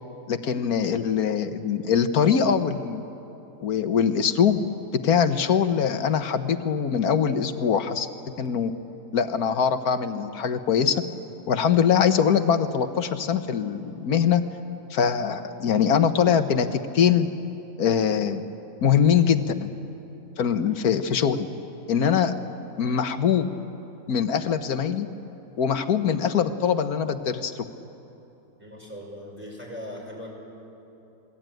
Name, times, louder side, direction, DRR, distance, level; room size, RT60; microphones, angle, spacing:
voice 1, 0.3-3.0 3.6-4.6 5.0-8.1 8.4-8.7 9.1-11.0 11.5-14.4 14.9-17.3 17.8-18.4 18.8-19.7 20.4-21.5 21.9-22.3 22.8-23.5 24.1-25.1 25.6-27.7, left 7 dB, 80° left, 9 dB, 1.6 m, -22 dB
voice 2, 28.6-30.3, equal, 5° right, -2 dB, 5.9 m, -39 dB
28.0 x 20.5 x 9.2 m, 2.9 s
omnidirectional pair, 1.6 m